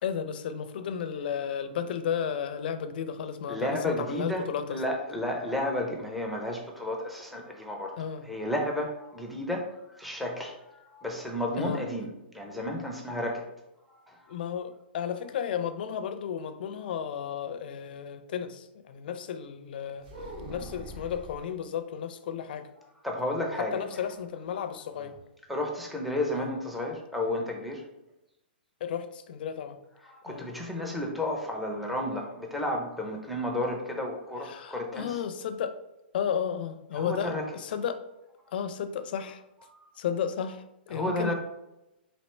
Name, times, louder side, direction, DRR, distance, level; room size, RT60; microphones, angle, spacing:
voice 1, 0.0-4.8 8.0-8.3 11.6-11.8 14.3-20.1 20.5-22.7 23.6-25.2 26.4-26.5 28.8-29.8 30.3-30.4 34.4-35.8 36.1-38.0 38.5-39.4 40.0-41.3, left 8 dB, 60° left, 10 dB, 0.4 m, -33 dB
voice 2, 3.5-8.0 8.2-13.4 14.1-14.2 23.0-23.8 25.5-27.8 30.0-35.2 36.9-37.4 39.7-39.8 40.9-41.3, left 1 dB, ahead, 0 dB, 0.5 m, -32 dB
sound 1, 20.0-21.5 23.2-24.1 24.4-24.5 24.9-25.2, right 1 dB, 50° right, 1.2 m, -43 dB
4.3 x 2.9 x 3.2 m, 0.92 s
hypercardioid pair, 155°, 6 cm